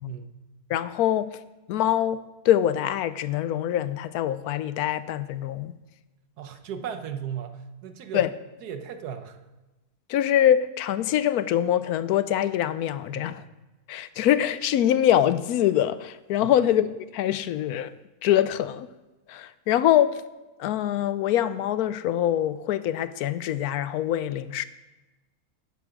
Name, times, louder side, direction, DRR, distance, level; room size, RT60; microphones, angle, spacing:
voice 1, 0.7-1.3 1.7-5.8 8.1-8.3 10.1-13.4 13.9-17.9 18.2-18.9 19.3-20.2 20.6-24.6, left 11 dB, 80° left, 15 dB, 1.1 m, -24 dB
voice 2, 6.4-8.3 8.6-9.4 13.1-13.3 16.4-16.6, right 8 dB, 90° right, 9 dB, 1.4 m, -36 dB
11.0 x 9.7 x 5.1 m, 1.1 s
omnidirectional pair, 1.6 m